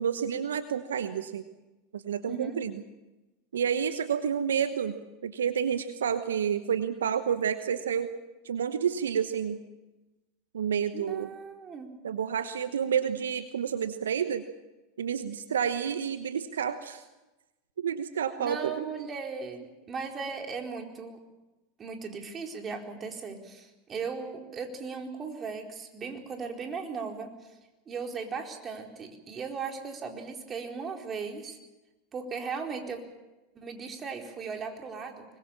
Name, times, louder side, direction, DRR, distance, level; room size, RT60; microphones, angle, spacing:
voice 1, 0.0-1.4 1.9-2.8 3.5-4.9 5.2-8.1 8.4-9.6 10.5-11.3 12.0-14.4 15.0-17.0 17.8-18.9, right 8 dB, 80° right, 10 dB, 1.1 m, -29 dB
voice 2, 2.3-2.6 10.9-11.9 18.4-21.2 21.8-27.5 27.9-31.6 32.1-33.0 33.5-35.3, right 5 dB, 30° right, 2 dB, 4.4 m, -37 dB
24.5 x 21.5 x 7.3 m, 1.1 s
hypercardioid pair, 85°, 0 cm